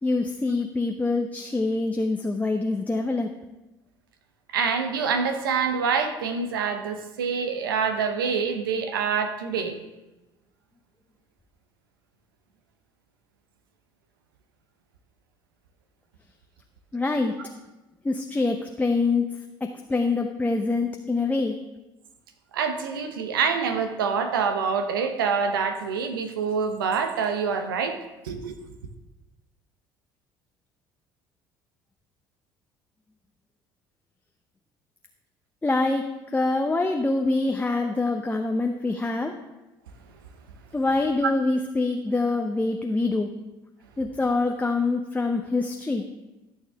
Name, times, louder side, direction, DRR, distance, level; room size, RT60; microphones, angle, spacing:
voice 1, 0.0-3.3 16.9-17.3 18.0-19.3 19.6-21.6 35.6-36.0 36.3-39.3 40.7-43.3 44.0-46.0, left 3 dB, 15° left, 3 dB, 0.8 m, -25 dB
voice 2, 4.5-9.8 22.5-28.0 28.2-28.6 41.2-41.3, right 6 dB, 85° right, 8 dB, 0.9 m, -26 dB
14.0 x 6.5 x 3.5 m, 1.0 s
hypercardioid pair, 65°, 11 cm